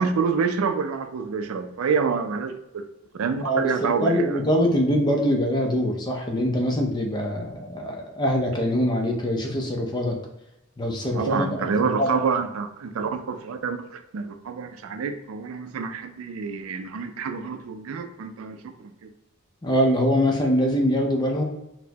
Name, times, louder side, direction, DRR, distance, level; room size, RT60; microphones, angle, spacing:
voice 1, 0.0-2.8 3.2-4.4 11.1-19.1, right 5 dB, 80° right, 7 dB, 0.4 m, -27 dB
voice 2, 3.4-10.2 10.8-11.7 12.0-12.2 19.6-21.4, equal, 20° left, 1 dB, 0.4 m, -23 dB
4.1 x 2.1 x 2.7 m, 0.88 s
head